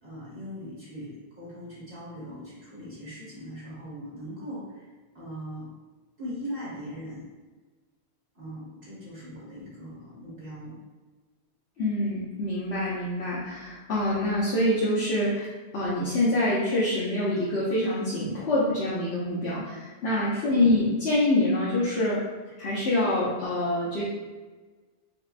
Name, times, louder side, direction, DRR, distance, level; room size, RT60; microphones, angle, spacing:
voice 1, 0.0-4.8 5.1-5.7 6.2-7.2 8.3-10.8 20.3-20.7, equal, 55° right, -9 dB, 1.3 m, -40 dB
voice 2, 11.8-22.2 22.6-24.0, left 1 dB, 75° left, -9 dB, 1.0 m, -26 dB
4.8 x 2.1 x 2.4 m, 1.3 s
omnidirectional pair, 1.1 m